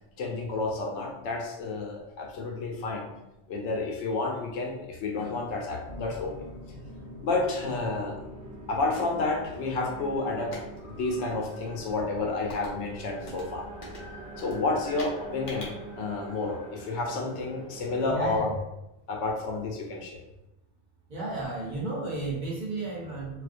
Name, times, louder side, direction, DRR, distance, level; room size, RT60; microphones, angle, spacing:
voice 1, 0.2-3.1 3.5-6.3 7.2-8.3 8.7-10.5 10.8-13.7 14.4-18.5 19.1-20.2, left 3 dB, 85° left, 1 dB, 0.9 m, -30 dB
sound 1, 5.9-18.2, right 2 dB, 75° right, 1.0 m, -44 dB
sound 2, 10.3-16.3, left 2 dB, 50° left, 0.7 m, -46 dB
voice 2, 18.1-18.5 21.1-23.4, right 2 dB, 50° right, -5 dB, 0.7 m, -33 dB
2.3 x 2.1 x 2.5 m, 0.90 s
omnidirectional pair, 1.1 m